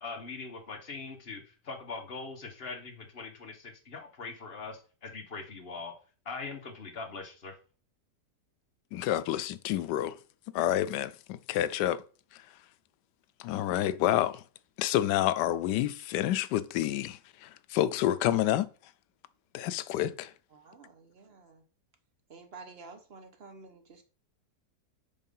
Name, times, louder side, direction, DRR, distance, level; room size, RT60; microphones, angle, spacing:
voice 1, 0.0-6.0 6.2-7.6, left 4 dB, 35° left, 1.5 m, -41 dB
voice 2, 8.9-10.2 10.5-12.0 12.3-12.4 13.4-14.4 14.8-18.7 19.5-20.3, left 12 dB, 80° left, 1.2 m, -29 dB
voice 3, 20.5-21.6 22.3-24.0, right 4 dB, 40° right, 1.1 m, -50 dB
5.5 x 4.8 x 5.4 m
omnidirectional pair, 1.8 m